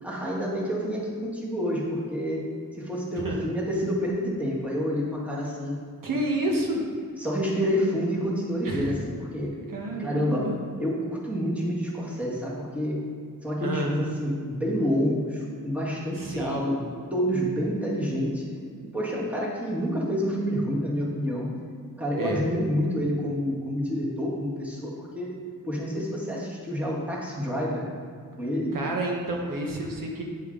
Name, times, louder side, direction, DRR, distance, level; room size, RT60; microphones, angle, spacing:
voice 1, 0.0-2.5 2.8-5.8 7.2-9.5 10.0-10.5 10.8-13.0 13.4-18.4 18.9-21.4 22.0-25.3 25.6-27.9 28.4-28.8, equal, 5° right, -4 dB, 1.7 m, -28 dB
voice 2, 6.0-6.8 8.6-8.9 9.7-10.5 13.6-13.9 16.2-16.7 22.2-22.4 28.7-30.2, right 1 dB, 70° right, 0 dB, 1.3 m, -29 dB
9.0 x 7.5 x 3.9 m, 2.1 s
wide cardioid pair, 160°, 34 cm